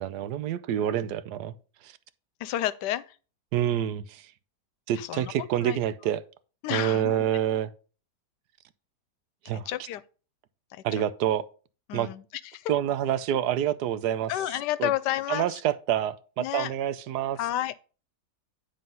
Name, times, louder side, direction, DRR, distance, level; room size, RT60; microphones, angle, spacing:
voice 1, 0.0-1.5 1.8-1.9 3.5-4.3 4.9-6.2 6.7-7.7 9.5-9.7 10.8-11.4 11.9-12.1 12.7-14.3 14.8-14.9 15.3-17.4, right 11 dB, 80° right, 1.1 m, -27 dB
voice 2, 2.4-3.2 4.9-5.3 5.6-5.8 6.6-7.3 9.5-10.0 10.7-10.8 11.9-12.7 14.3-15.6 16.4-16.7 17.4-17.8, left 13 dB, 90° left, 1.2 m, -31 dB
9.3 x 3.8 x 5.4 m
omnidirectional pair, 1.8 m